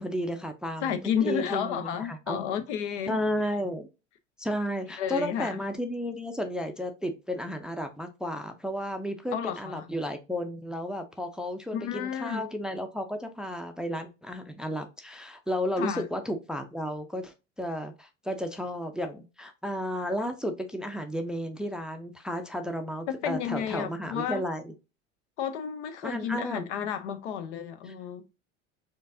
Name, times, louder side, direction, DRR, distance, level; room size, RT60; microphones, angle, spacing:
voice 1, 0.0-1.0 1.2-2.5 3.1-3.9 4.4-24.7 26.0-26.7 27.8-27.9, equal, ahead, 0.4 m, -33 dB
voice 2, 0.8-3.2 5.0-5.6 9.3-9.9 11.7-12.4 15.8-16.0 23.1-24.4 25.4-28.2, left 8 dB, 70° left, 0.7 m, -31 dB
4.5 x 2.6 x 2.6 m
hypercardioid pair, 75°, 36 cm